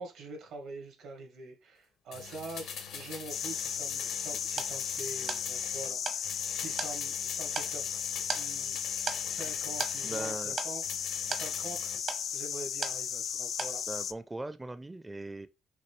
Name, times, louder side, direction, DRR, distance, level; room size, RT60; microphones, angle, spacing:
voice 1, 0.0-8.0 8.3-8.8 9.3-11.9 12.3-13.8, right 3 dB, 90° right, 1.8 m, -45 dB
sound 1, 2.1-5.9 6.2-10.4 10.8-12.0 12.3-12.4, left 7 dB, 85° left, 1.1 m, -44 dB
sound 2, 3.3-14.1, left 8 dB, 65° left, 0.3 m, -35 dB
sound 3, 3.9-13.3 13.6-14.2, right 5 dB, 60° right, 0.8 m, -40 dB
voice 2, 10.0-10.6 13.9-15.5, right 2 dB, 15° right, 0.4 m, -39 dB
5.9 x 2.6 x 3.1 m
cardioid pair, 90°, 0 cm